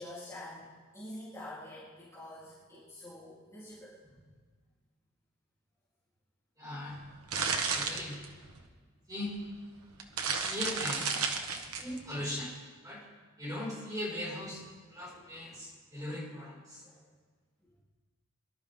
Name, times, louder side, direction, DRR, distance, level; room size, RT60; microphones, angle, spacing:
voice 1, 0.0-4.2 11.7-11.8 15.0-15.6 16.8-17.0 17.6-17.7, left 1 dB, 15° left, -10 dB, 3.5 m, -47 dB
voice 2, 6.6-7.0 7.7-8.2 9.1-9.3 10.3-11.1 11.7-12.5 12.8-13.0 13.4-16.9, left 1 dB, 15° right, -6 dB, 5.9 m, -39 dB
sound 1, 6.9-8.7 9.4-9.5 9.9-12.0, right 5 dB, 80° right, 1.4 m, -32 dB
23.0 x 12.0 x 3.7 m, 1.5 s
head